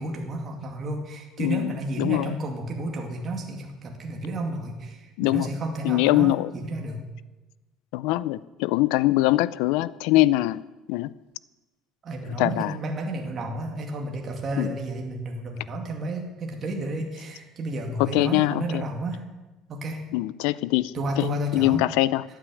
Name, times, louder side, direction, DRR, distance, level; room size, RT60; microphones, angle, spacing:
voice 1, 0.0-7.1 12.0-19.2 19.7-20.0 20.9-21.8, right 1 dB, 25° right, 2 dB, 2.2 m, -31 dB
voice 2, 1.4-2.4 5.2-5.5 5.8-6.5 7.9-10.6 10.9-11.1 12.4-12.8 14.6-14.8 18.0-18.8 20.1-21.3 21.5-22.2, left 17 dB, 85° left, 18 dB, 0.5 m, -23 dB
14.5 x 9.0 x 8.4 m, 1.1 s
cardioid pair, 180°, 0 cm